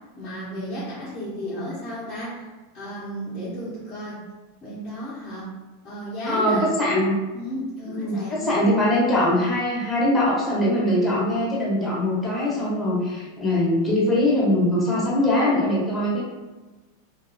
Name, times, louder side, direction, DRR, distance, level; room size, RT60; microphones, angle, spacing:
voice 1, 0.2-2.5 2.7-4.2 4.6-5.5 5.8-6.6 7.3-8.5, equal, 30° left, -11 dB, 0.9 m, -33 dB
voice 2, 6.3-7.1 7.9-16.2, left 1 dB, 10° left, -7 dB, 1.1 m, -22 dB
2.7 x 2.4 x 2.2 m, 1.2 s
hypercardioid pair, 100°, 0 cm